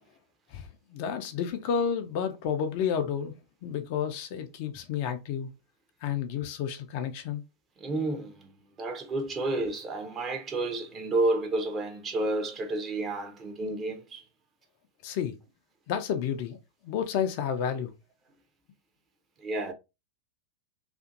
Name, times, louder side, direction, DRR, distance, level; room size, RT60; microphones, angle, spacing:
voice 1, 0.9-5.5 6.0-7.4 15.0-15.4 15.9-16.6 16.8-17.9, left 8 dB, 45° left, 0.4 m, -31 dB
voice 2, 7.8-8.5 8.8-14.2 19.4-19.7, right 2 dB, 25° right, 0.7 m, -30 dB
2.5 x 2.5 x 2.4 m
figure-of-eight pair, 90°, 0 cm